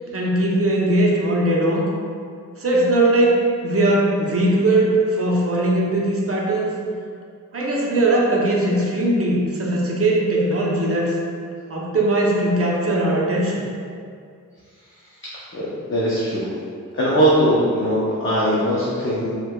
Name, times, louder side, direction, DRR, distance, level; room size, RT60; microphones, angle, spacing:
voice 1, 0.1-1.8 2.6-6.7 7.5-11.2 11.7-13.6, right 1 dB, 45° right, -3 dB, 0.6 m, -19 dB
voice 2, 15.5-16.5 16.9-19.3, equal, 40° left, -7 dB, 0.6 m, -20 dB
4.4 x 2.2 x 2.2 m, 2.2 s
wide cardioid pair, 70°, 33 cm